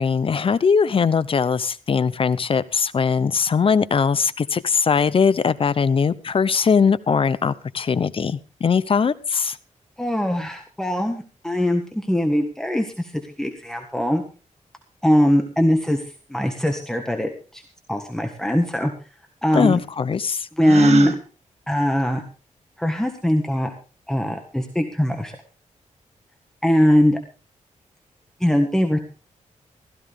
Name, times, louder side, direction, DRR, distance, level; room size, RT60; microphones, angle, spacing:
voice 1, 0.0-9.5 19.5-20.4, left 6 dB, 45° left, 16 dB, 0.7 m, -20 dB
voice 2, 10.0-14.2 15.0-17.6 17.9-18.9 19.4-19.8 20.6-21.2 21.7-22.2 22.8-23.7 24.1-25.4 26.6-27.2 28.4-29.0, equal, 5° left, 4 dB, 1.7 m, -21 dB
Gasp, 20.6-21.2, right 7 dB, 55° right, 1.6 m, -24 dB
16.5 x 14.5 x 3.6 m, 0.35 s
wide cardioid pair, 125°, 13 cm